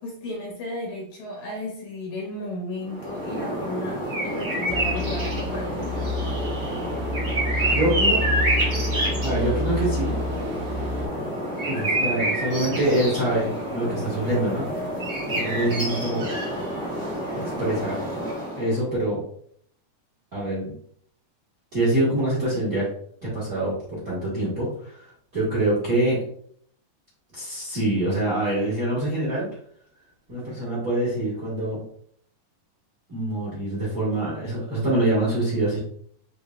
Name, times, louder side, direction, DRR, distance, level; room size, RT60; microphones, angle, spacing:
voice 1, 0.0-6.1, left 1 dB, 65° left, -1 dB, 2.0 m, -34 dB
sound 1, 2.8-18.8, right 1 dB, 70° right, 0.6 m, -28 dB
sound 2, 4.7-11.1, left 1 dB, 90° right, 1.2 m, -29 dB
voice 2, 7.7-8.2 9.2-10.2 11.7-14.7 15.3-16.3 17.6-18.0 18.6-19.2 20.3-20.7 21.7-22.9 23.2-25.0 25.3-26.2 27.3-29.5 30.3-31.8 33.1-35.8, right 1 dB, 40° right, -7 dB, 1.3 m, -25 dB
6.4 x 2.5 x 2.4 m, 0.63 s
omnidirectional pair, 3.6 m